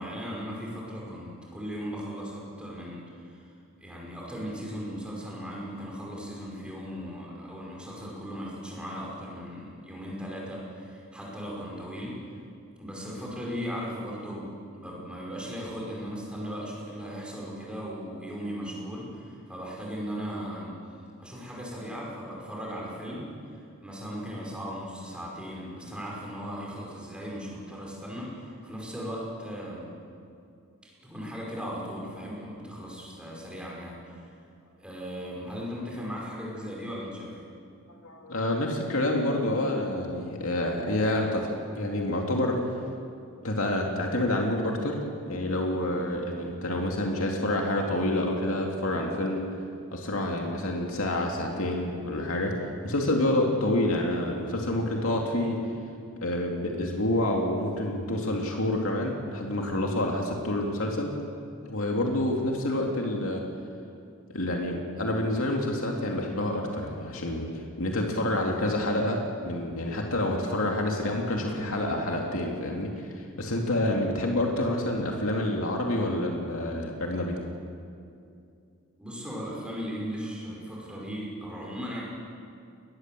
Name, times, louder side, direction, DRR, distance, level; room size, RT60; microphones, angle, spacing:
voice 1, 0.0-3.5 3.8-12.2 12.8-29.9 31.0-34.3 34.8-37.4 79.0-82.0, equal, 5° right, -4 dB, 5.2 m, -37 dB
voice 2, 37.9-42.6 43.4-45.0 45.3-49.4 49.9-52.5 52.8-55.6 56.2-61.1 61.7-63.4 64.3-67.5 67.8-72.9 73.4-77.3, left 1 dB, 70° left, 0 dB, 2.5 m, -28 dB
21.5 x 19.5 x 7.7 m, 2.4 s
head